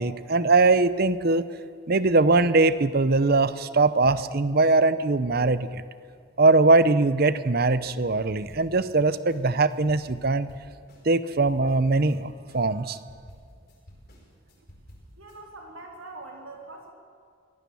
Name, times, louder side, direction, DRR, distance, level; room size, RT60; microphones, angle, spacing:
voice 1, 0.0-1.4 1.9-5.8 6.4-10.5 11.0-13.0, right 3 dB, 45° right, 14 dB, 0.7 m, -21 dB
sound 1, 8.3-9.0 9.3-12.2 12.5-15.4, equal, 45° left, 4.6 m, -51 dB
voice 2, 15.2-16.9, right 2 dB, 75° right, 0 dB, 3.9 m, -43 dB
24.0 x 16.5 x 7.1 m, 2.1 s
head